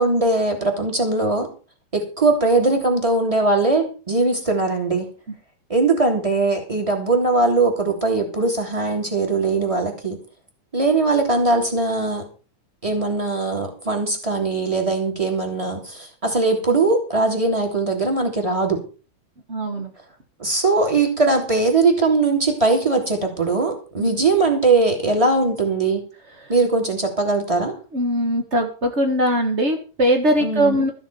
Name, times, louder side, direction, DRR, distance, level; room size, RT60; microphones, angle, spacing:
voice 1, 0.0-1.5 1.9-5.1 5.7-10.2 10.7-12.2 12.8-18.8 20.4-26.0 26.5-27.8 30.4-30.9, right 3 dB, 10° right, 3 dB, 2.9 m, -20 dB
voice 2, 19.5-19.9 24.0-24.1 27.9-30.9, equal, 40° right, 4 dB, 1.0 m, -20 dB
14.0 x 7.0 x 6.9 m, 0.36 s
omnidirectional pair, 3.7 m